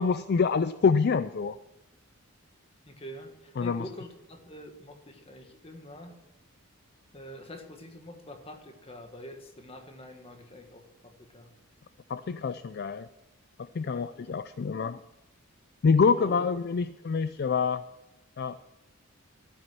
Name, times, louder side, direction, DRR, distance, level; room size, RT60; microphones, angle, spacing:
voice 1, 0.0-1.6 3.6-3.8 12.1-13.1 13.6-15.0 15.8-17.8 18.4-18.6, left 5 dB, 45° left, 13 dB, 0.3 m, -26 dB
voice 2, 2.8-6.1 7.1-11.5 13.8-14.0 16.2-16.6, equal, 25° left, 5 dB, 1.6 m, -45 dB
12.5 x 9.7 x 6.1 m, 0.98 s
head